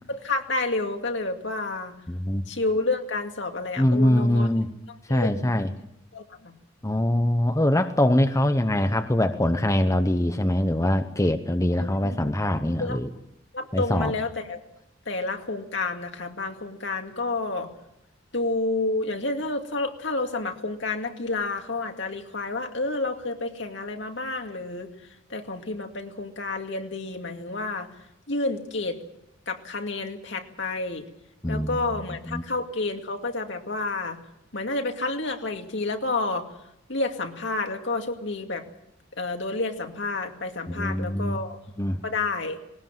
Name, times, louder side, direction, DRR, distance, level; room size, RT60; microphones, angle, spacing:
voice 1, 0.1-1.9 2.5-4.5 5.1-5.6 6.1-6.5 11.8-12.3 12.8-13.0 13.5-14.6 15.1-17.7 18.3-24.9 25.3-27.9 28.3-29.0 29.5-31.1 31.5-34.2 34.5-36.5 36.9-38.6 39.2-41.6 42.0-42.6, left 3 dB, 65° left, 4 dB, 2.4 m, -30 dB
voice 2, 2.1-2.4 3.8-4.7 5.1-5.7 6.8-13.1 13.7-14.1 31.4-31.8 32.3-32.4 40.7-41.4 41.8-42.0, left 1 dB, 15° left, 7 dB, 0.9 m, -23 dB
20.0 x 19.0 x 7.6 m, 0.82 s
head